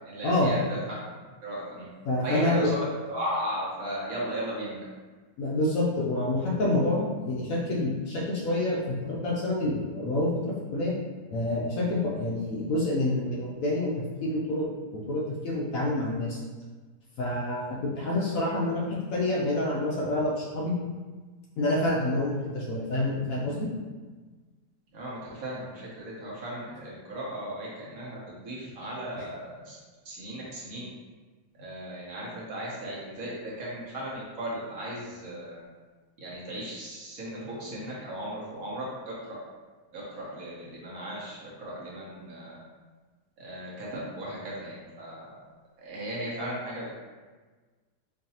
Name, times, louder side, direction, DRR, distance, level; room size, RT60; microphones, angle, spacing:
voice 1, 0.1-1.0 1.4-1.9 2.2-2.8 3.1-4.8 24.9-29.8 30.0-30.9 31.6-35.6 36.2-38.8 39.3-39.4 39.9-42.6 43.4-45.3 45.8-47.0, right 1 dB, 60° right, -6 dB, 1.3 m, -36 dB
voice 2, 2.0-2.7 5.4-10.9 11.3-13.9 14.2-16.4 17.2-20.8 21.6-23.7 29.1-29.2, left 1 dB, 65° left, -4 dB, 0.9 m, -27 dB
4.6 x 2.6 x 2.8 m, 1.4 s
omnidirectional pair, 1.8 m